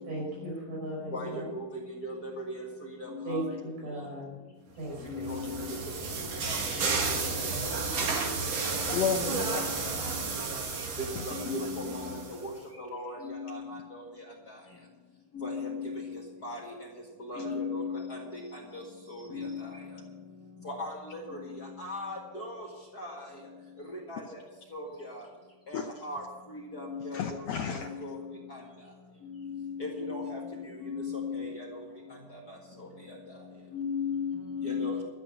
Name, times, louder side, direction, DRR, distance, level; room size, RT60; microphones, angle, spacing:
voice 1, 0.1-1.4 3.3-4.3 4.8-5.3, right 1 dB, 80° right, -3 dB, 6.9 m, -37 dB
voice 2, 2.0-2.6 3.0-3.5 5.1-5.6 6.5-6.6 7.1-7.8 8.1-8.2 8.6-8.7 9.9-10.0 11.0-12.0 12.4-12.5 12.9-13.8 15.4-16.0 16.4-16.6 17.3-18.2 19.1-19.5 20.7-20.9 21.8-22.6 23.0-23.1 24.1-24.2 24.7-24.9 25.7-26.2 26.5-27.4 27.8-28.2 29.4-30.4 30.8-31.7 33.7-35.0, left 3 dB, 35° left, -2 dB, 1.9 m, -36 dB
sound 1, 4.9-12.5, right 4 dB, 55° right, 2.5 m, -32 dB
voice 3, 8.9-9.9 17.3-17.4 25.7-25.9 27.1-27.9, left 7 dB, 70° left, 4 dB, 1.6 m, -32 dB
13.0 x 8.1 x 8.3 m, 1.2 s
omnidirectional pair, 3.8 m